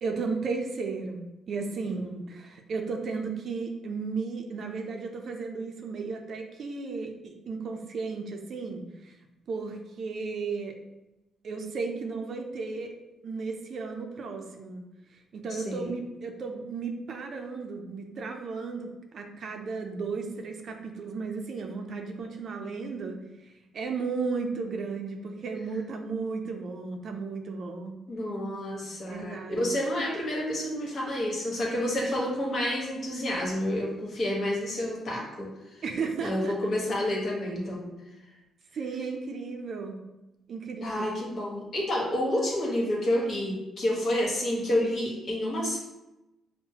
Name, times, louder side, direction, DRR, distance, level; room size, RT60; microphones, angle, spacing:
voice 1, 0.0-9.2 9.5-10.8 11.4-12.9 13.2-14.8 15.3-23.2 23.7-28.0 29.1-29.8 35.8-36.7 38.7-40.0 40.5-41.1, right 4 dB, 55° right, 4 dB, 0.5 m, -34 dB
voice 2, 1.9-2.2 15.5-15.9 28.1-35.5 36.2-37.9 40.8-45.8, left 1 dB, 50° left, -3 dB, 1.4 m, -29 dB
5.4 x 2.2 x 2.8 m, 0.96 s
cardioid pair, 90°, 0 cm